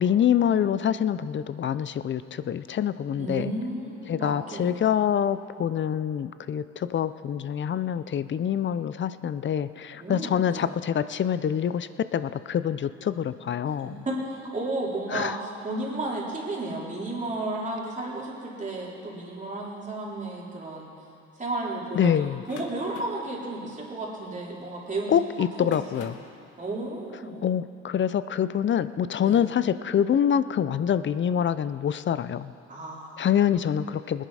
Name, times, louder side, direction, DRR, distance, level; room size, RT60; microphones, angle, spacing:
voice 1, 0.0-3.5 4.1-14.0 15.1-15.4 21.9-22.4 25.1-26.2 27.4-32.5 33.2-34.3, left 9 dB, 40° left, 14 dB, 0.5 m, -25 dB
voice 2, 3.2-4.8 10.0-10.7 13.7-13.8 14.1-20.9 21.4-25.1 25.6-26.1 26.6-27.5 29.2-29.5 32.7-33.3, right 2 dB, 25° right, -5 dB, 3.5 m, -33 dB
sound 1, 22.1-24.9 25.5-26.4, left 5 dB, 85° left, 1.3 m, -48 dB
19.5 x 10.0 x 4.9 m, 2.6 s
cardioid pair, 90°, 30 cm